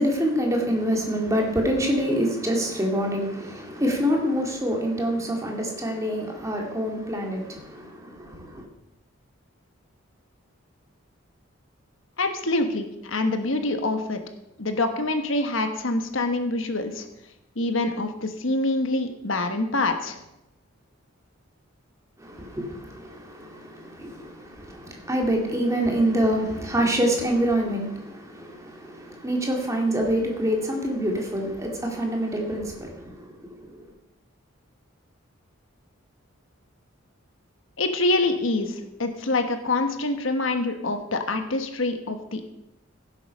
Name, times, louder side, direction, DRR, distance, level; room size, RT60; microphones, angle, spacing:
voice 1, 0.0-8.7 22.2-33.3 33.6-33.7, equal, 15° right, 2.2 m, -26 dB
voice 2, 12.2-14.2 14.6-17.1 17.6-20.2 37.8-42.4, left 2 dB, 70° left, 1.3 m, -25 dB
16.5 x 7.9 x 5.3 m
head